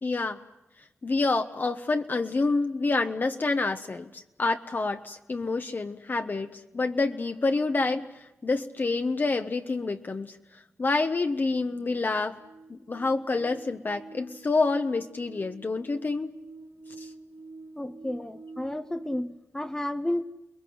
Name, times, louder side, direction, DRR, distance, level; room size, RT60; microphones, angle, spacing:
voice 1, 0.0-0.4 1.0-10.4 10.8-12.4 12.7-16.3 17.0-17.1, left 3 dB, 40° left, 1.0 m, -28 dB
sound 1, 11.2-19.2, right 3 dB, 70° right, 1.9 m, -48 dB
voice 2, 17.8-20.3, left 1 dB, 10° left, 0.9 m, -32 dB
29.5 x 20.5 x 7.9 m
cardioid pair, 70°, 5 cm